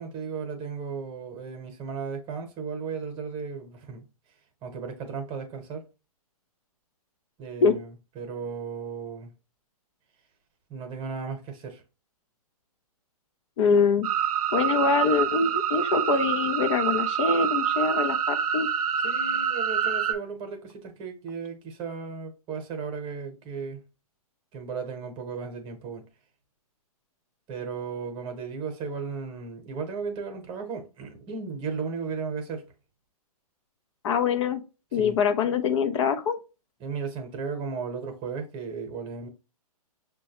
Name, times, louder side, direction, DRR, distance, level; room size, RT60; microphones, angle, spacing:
voice 1, 0.0-4.0 4.6-5.8 7.4-9.3 10.7-11.8 19.0-23.8 24.5-26.0 27.5-32.6 34.9-35.2 36.8-39.3, right 5 dB, 25° right, 0.9 m, -35 dB
voice 2, 13.6-14.1 14.5-18.7 34.0-34.6 34.9-36.4, left 5 dB, 50° left, 0.5 m, -24 dB
sound 1, 14.0-20.1, right 9 dB, 70° right, 0.6 m, -26 dB
6.0 x 2.2 x 2.8 m
hypercardioid pair, 130°, 19 cm